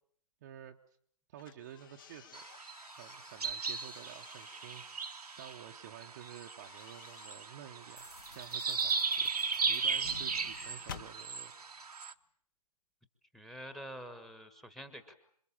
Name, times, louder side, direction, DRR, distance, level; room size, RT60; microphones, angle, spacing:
voice 1, 0.4-0.8 1.3-2.5 2.9-4.8 5.4-9.3 9.7-11.5, right 10 dB, 25° right, 3 dB, 1.0 m, -51 dB
sound 1, 1.4-5.6 6.3-11.1, left 8 dB, 30° left, 1.1 m, -54 dB
sound 2, 2.3-12.1, right 5 dB, 70° right, 1.2 m, -37 dB
sound 3, 8.0-11.8, left 3 dB, 70° left, 3.3 m, -55 dB
voice 2, 13.3-15.1, equal, ahead, 10 dB, 1.4 m, -47 dB
27.0 x 23.5 x 7.3 m, 0.64 s
figure-of-eight pair, 145°, 20 cm